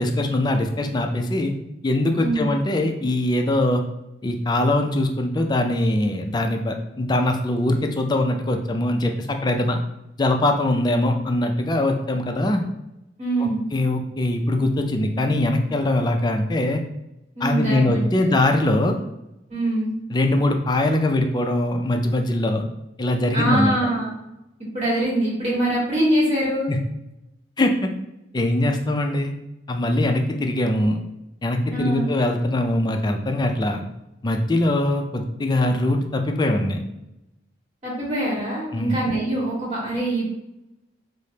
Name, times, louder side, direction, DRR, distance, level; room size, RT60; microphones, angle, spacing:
voice 1, 0.0-1.5 1.8-3.8 4.2-9.8 10.2-12.6 13.4-16.8 17.4-19.0 20.1-22.6 23.0-23.8 26.7-26.8 27.6-27.9 28.3-29.3 29.7-31.0 31.4-33.8 34.2-36.8 38.7-39.0, left 1 dB, 25° left, 4 dB, 0.4 m, -22 dB
voice 2, 2.2-2.5 13.2-13.6 17.4-18.4 19.5-20.0 23.3-24.1 24.7-26.7 31.7-32.1 37.8-40.3, right 1 dB, 40° right, -5 dB, 1.4 m, -23 dB
4.9 x 2.1 x 2.8 m, 0.89 s
head